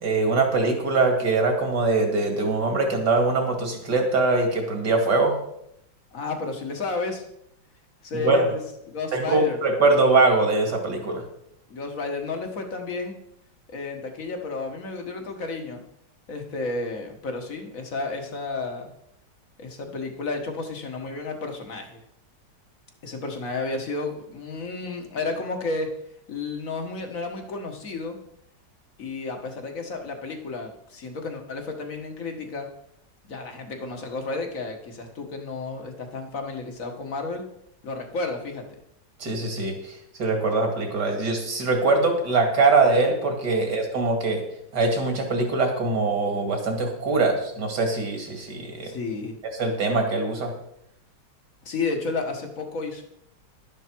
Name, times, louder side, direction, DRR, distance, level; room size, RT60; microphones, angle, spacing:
voice 1, 0.0-5.3 8.2-8.5 9.1-11.2 39.2-44.4 44.7-48.9 49.6-50.5, right 3 dB, 65° right, 3 dB, 2.9 m, -22 dB
voice 2, 6.1-7.2 8.0-8.6 8.9-9.6 11.7-13.2 13.7-15.8 16.3-18.9 19.6-22.0 23.0-25.9 26.3-28.2 29.0-32.7 33.3-37.5 37.8-38.6 48.8-49.4 51.6-53.0, left 3 dB, 50° left, 4 dB, 1.8 m, -32 dB
11.5 x 10.5 x 4.6 m, 0.76 s
omnidirectional pair, 2.0 m